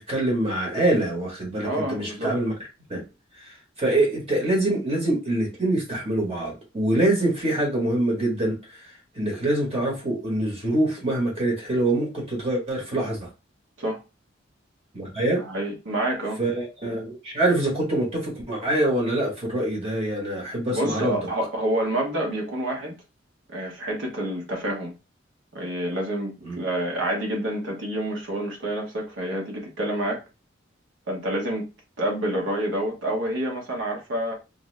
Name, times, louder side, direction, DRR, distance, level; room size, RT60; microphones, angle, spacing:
voice 1, 0.0-2.5 2.9-3.0 3.4-13.3 14.9-15.4 16.4-21.2 26.4-26.6, right 1 dB, 30° right, 1.0 m, -25 dB
voice 2, 1.6-2.3 13.8-14.0 15.3-16.4 20.7-22.9 23.5-24.9 25.5-30.2 31.1-31.7 32.0-34.3, right 1 dB, 80° right, 0.9 m, -28 dB
2.6 x 2.5 x 3.1 m
head